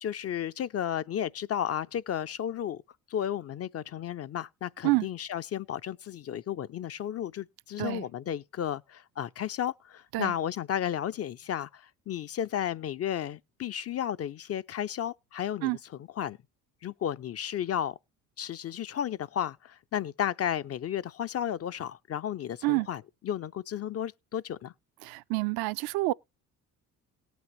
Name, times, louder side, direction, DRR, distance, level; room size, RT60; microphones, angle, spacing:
voice 1, 0.0-2.8 3.1-15.7 16.2-16.4 16.8-18.0 18.4-24.7, left 10 dB, 35° left, 0.4 m, -33 dB
voice 2, 25.0-26.1, right 22 dB, 65° right, 0.5 m, -28 dB
18.0 x 6.1 x 3.0 m
hypercardioid pair, 55°, 41 cm